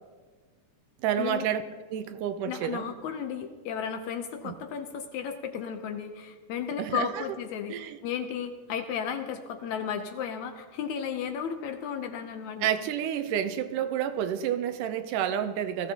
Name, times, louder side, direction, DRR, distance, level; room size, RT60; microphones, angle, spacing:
voice 1, 1.0-1.6 1.9-2.9 4.4-4.6 6.8-7.2 7.7-8.0 12.6-15.9, right 9 dB, 80° right, 10 dB, 2.2 m, -29 dB
voice 2, 2.5-12.7, left 7 dB, 75° left, 7 dB, 1.9 m, -34 dB
19.5 x 15.0 x 2.9 m, 1.5 s
omnidirectional pair, 3.7 m